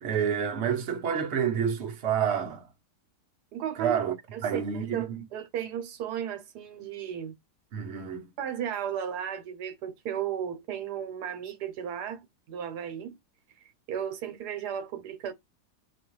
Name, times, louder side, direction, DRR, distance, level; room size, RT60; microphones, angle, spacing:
voice 1, 0.0-2.7 3.8-4.1 4.4-5.2 7.7-8.3, right 8 dB, 50° right, 1.0 m, -28 dB
voice 2, 3.5-4.0 4.3-7.3 8.4-13.2 13.9-15.3, right 9 dB, 80° right, 1.3 m, -35 dB
4.2 x 2.3 x 3.1 m
omnidirectional pair, 1.7 m